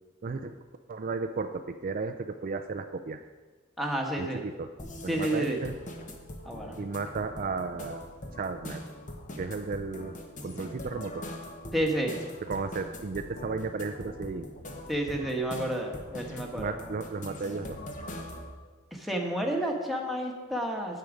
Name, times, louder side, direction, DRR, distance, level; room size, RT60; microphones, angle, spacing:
voice 1, 0.2-0.5 0.9-3.2 4.2-4.7 5.0-5.7 6.8-8.0 8.3-8.8 9.4-11.3 12.4-14.5 16.4-17.8, right 4 dB, 45° right, 7 dB, 0.4 m, -34 dB
voice 2, 3.8-4.4 5.1-5.6 6.4-6.8 11.7-12.2 14.9-16.7 18.9-21.0, right 1 dB, ahead, 0 dB, 1.2 m, -30 dB
sound 1, 4.8-18.5, left 1 dB, 40° left, 1.1 m, -42 dB
9.5 x 8.4 x 5.1 m, 1.3 s
head